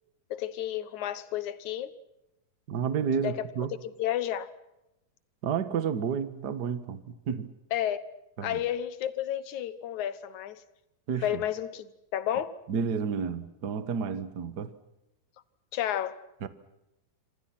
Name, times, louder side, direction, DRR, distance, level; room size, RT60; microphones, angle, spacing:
voice 1, 0.3-1.9 3.2-3.3 4.0-4.5 7.7-8.0 8.4-10.6 11.2-12.5 15.7-16.2, left 11 dB, 70° left, 2.5 m, -31 dB
voice 2, 2.7-3.7 5.4-7.5 8.4-8.6 11.1-11.4 12.7-14.7 16.4-16.5, right 6 dB, 50° right, 1.3 m, -31 dB
26.5 x 26.5 x 5.9 m
omnidirectional pair, 3.8 m